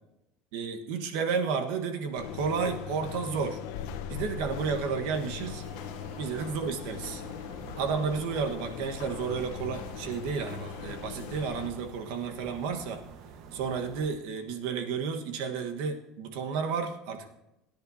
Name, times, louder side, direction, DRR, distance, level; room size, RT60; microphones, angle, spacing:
voice 1, 0.5-3.6 4.1-5.6 6.2-7.2 7.8-13.0 13.5-17.3, right 5 dB, 75° right, 5 dB, 1.4 m, -32 dB
sound 1, 2.2-11.7, left 8 dB, 80° left, 1.0 m, -40 dB
sound 2, 5.4-14.1, right 6 dB, 60° right, 1.3 m, -48 dB
24.0 x 10.0 x 2.8 m, 0.92 s
supercardioid pair, 120°, 0 cm